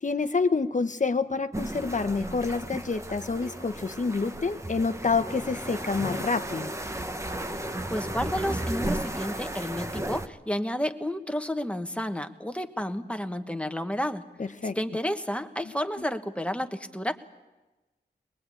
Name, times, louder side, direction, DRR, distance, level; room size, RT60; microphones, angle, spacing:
voice 1, 0.0-6.7 14.4-14.8, left 4 dB, 45° left, 10 dB, 1.0 m, -28 dB
sound 1, 1.5-10.3, right 1 dB, 15° right, 1.1 m, -34 dB
voice 2, 7.9-14.2 14.6-17.1, equal, 5° left, 7 dB, 1.2 m, -31 dB
22.0 x 21.5 x 8.5 m, 1.1 s
wide cardioid pair, 95°, 18 cm